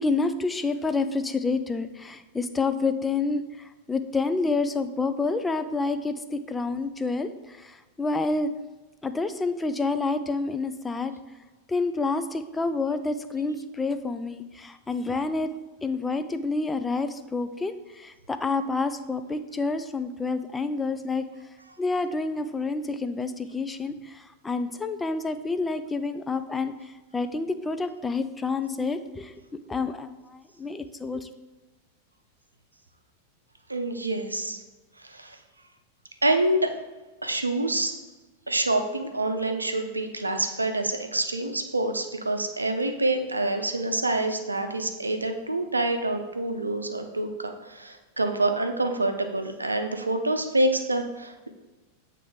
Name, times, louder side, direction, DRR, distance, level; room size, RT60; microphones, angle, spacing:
voice 1, 0.0-8.5 9.0-11.1 11.7-15.5 15.8-21.3 21.8-29.3 29.7-31.3, left 3 dB, 10° left, 10 dB, 0.4 m, -28 dB
voice 2, 33.7-34.6 35.0-35.4 36.2-36.7 37.2-37.9 38.5-51.5, right 2 dB, 80° right, 6 dB, 0.6 m, -27 dB
8.4 x 3.3 x 3.7 m, 1.1 s
figure-of-eight pair, 90°, 0 cm